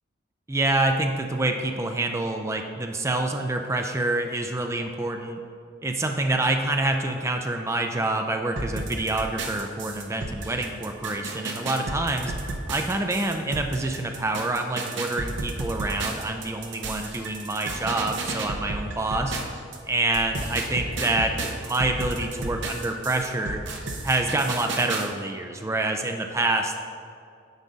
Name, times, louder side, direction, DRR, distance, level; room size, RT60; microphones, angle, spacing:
voice 1, 0.5-5.4 5.8-12.3 12.7-19.4 19.8-23.6 24.0-26.8, right 2 dB, 15° right, 4 dB, 0.4 m, -27 dB
sound 1, 8.6-19.8 20.1-25.1, right 2 dB, 55° right, 0.7 m, -33 dB
9.4 x 4.8 x 4.0 m, 2.4 s
head